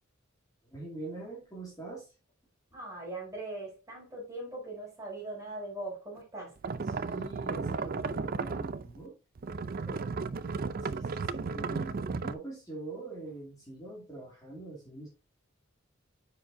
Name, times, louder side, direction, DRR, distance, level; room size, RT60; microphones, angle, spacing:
voice 1, 0.6-2.1 6.9-9.1 10.8-15.1, right 2 dB, 20° left, 2.1 m, -43 dB
voice 2, 2.7-6.6 9.9-10.1, right 2 dB, 15° right, 3.8 m, -41 dB
sound 1, 6.6-9.0 9.4-12.3, right 4 dB, 45° right, 0.4 m, -34 dB
9.3 x 5.1 x 2.6 m
head